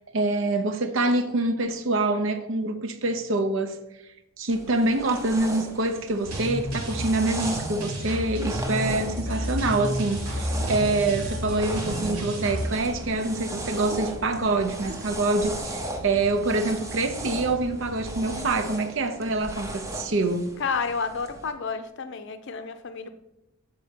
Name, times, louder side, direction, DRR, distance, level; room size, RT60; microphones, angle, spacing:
voice 1, 0.1-3.8 4.4-20.5, right 2 dB, 60° right, 0.6 m, -26 dB
sound 1, 4.5-21.5, right 1 dB, 15° right, 0.6 m, -38 dB
sound 2, 6.2-12.7, equal, 90° right, 1.9 m, -31 dB
Subway metro underground, 10.6-18.6, equal, 40° right, 0.9 m, -40 dB
voice 2, 18.3-18.8 20.6-23.1, left 5 dB, 55° left, 0.6 m, -31 dB
6.7 x 4.2 x 5.1 m
head